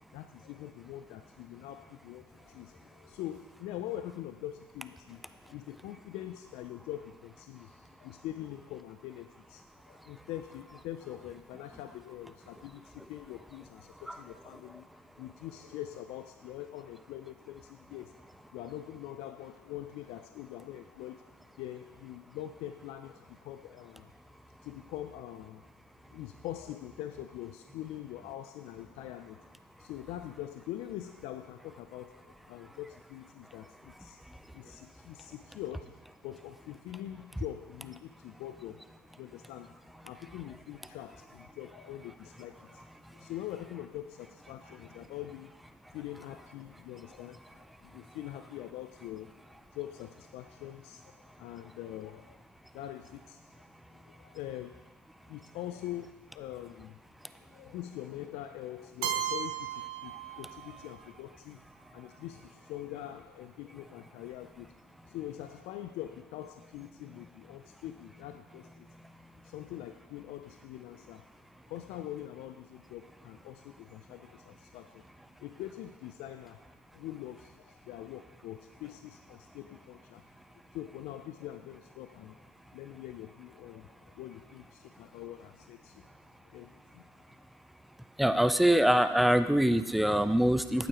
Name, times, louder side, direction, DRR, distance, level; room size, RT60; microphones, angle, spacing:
voice 1, 0.1-14.9 15.2-24.1 24.6-25.6 26.1-29.5 29.8-34.2 34.5-35.9 36.2-38.8 39.2-39.7 40.0-42.8 43.1-45.5 45.9-49.3 49.7-52.4 52.7-54.8 55.3-57.0 57.4-61.6 61.9-64.7 65.0-68.9 69.4-71.3 71.7-75.0 75.4-76.6 76.9-80.2 80.7-86.0 86.5-87.1, left 13 dB, 65° left, 8 dB, 0.4 m, -44 dB
Keyboard (musical), 59.0-61.0, right 10 dB, 85° right, 0.7 m, -35 dB
voice 2, 88.2-90.9, right 1 dB, ahead, 11 dB, 0.4 m, -24 dB
9.1 x 7.9 x 3.0 m, 1.2 s
supercardioid pair, 85°, 12 cm